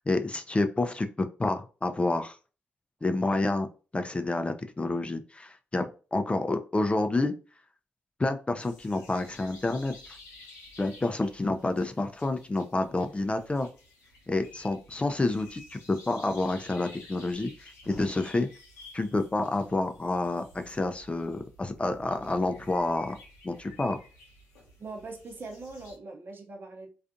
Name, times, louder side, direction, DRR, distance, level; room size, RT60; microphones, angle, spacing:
voice 1, 0.0-2.4 3.0-3.7 3.9-7.3 8.2-10.2 10.8-13.7 14.3-18.5 18.9-23.2 23.4-24.0, left 2 dB, 25° left, 7 dB, 0.4 m, -29 dB
sound 1, 8.6-26.0, left 1 dB, 90° left, 0.7 m, -52 dB
voice 2, 24.8-26.9, right 3 dB, 50° right, 3 dB, 0.8 m, -41 dB
2.4 x 2.4 x 2.5 m, 0.35 s
hypercardioid pair, 40°, 5 cm